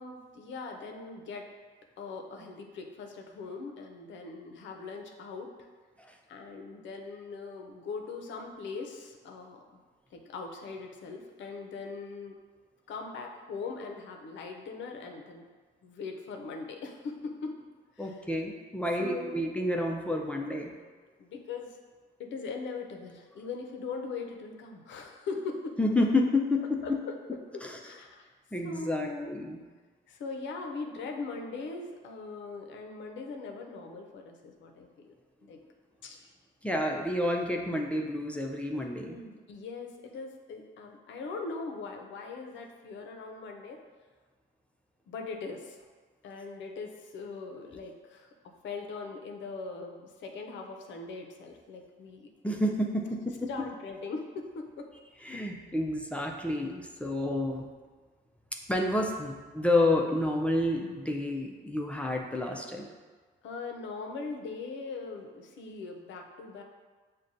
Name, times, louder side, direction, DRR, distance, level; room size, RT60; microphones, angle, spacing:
voice 1, 0.0-1.5 2.0-5.5 6.3-9.8 10.1-12.4 12.9-15.5 15.8-17.6 18.0-18.2 19.0-19.4 21.2-21.8 22.2-25.8 26.8-27.1 27.5-28.3 28.6-29.3 30.1-35.1 35.4-35.6 36.0-36.3 39.0-43.8 45.1-45.8 46.2-48.3 48.6-52.3 53.5-54.9 63.4-66.6, left 4 dB, 70° left, 3 dB, 0.6 m, -40 dB
voice 2, 18.0-20.7 25.8-27.0 27.6-27.8 28.5-29.6 36.6-39.2 52.4-53.5 55.2-57.7 58.5-62.9, left 1 dB, 5° left, 0 dB, 0.4 m, -29 dB
6.2 x 2.2 x 2.6 m, 1.4 s
cardioid pair, 90°, 20 cm